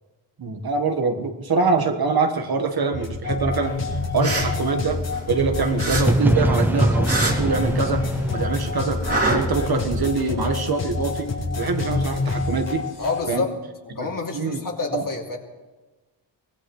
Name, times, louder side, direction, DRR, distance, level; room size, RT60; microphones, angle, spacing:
voice 1, 0.4-5.0 5.3-9.0 9.3-11.3 11.6-12.8 13.3-13.4 13.9-14.1 14.3-14.6 14.9-15.0, right 4 dB, 55° right, 5 dB, 1.6 m, -24 dB
sound 1, 2.9-13.2, left 3 dB, 80° left, 4.6 m, -27 dB
sound 2, 4.0-5.4 5.8-8.2 8.4-10.0, right 2 dB, 30° right, 2.8 m, -26 dB
sound 3, 6.1-9.9, right 1 dB, 5° right, 0.6 m, -23 dB
voice 2, 13.0-13.5 13.9-15.4, left 4 dB, 50° left, 0 dB, 2.9 m, -28 dB
23.5 x 17.5 x 3.3 m, 1.2 s
cardioid pair, 80°, 43 cm